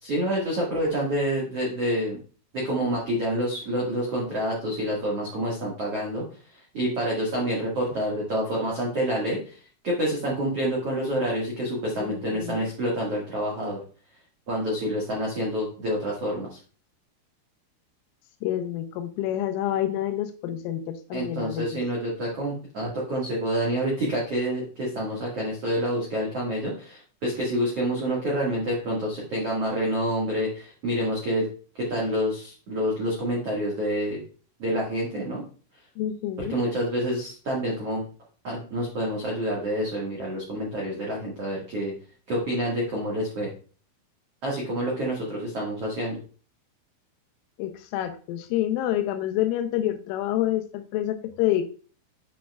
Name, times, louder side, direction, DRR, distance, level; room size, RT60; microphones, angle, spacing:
voice 1, 0.0-2.2 2.5-6.2 6.5-9.6 9.8-13.8 14.5-16.6 21.1-31.5 31.7-34.2 34.6-35.4 36.4-38.0 38.4-41.9 42.3-43.5 44.4-46.2, equal, 75° right, -4 dB, 1.4 m, -28 dB
voice 2, 12.0-12.7 18.4-21.8 36.0-36.6 47.6-51.6, left 12 dB, 85° left, 8 dB, 3.2 m, -28 dB
8.5 x 6.2 x 2.3 m, 0.40 s
omnidirectional pair, 5.8 m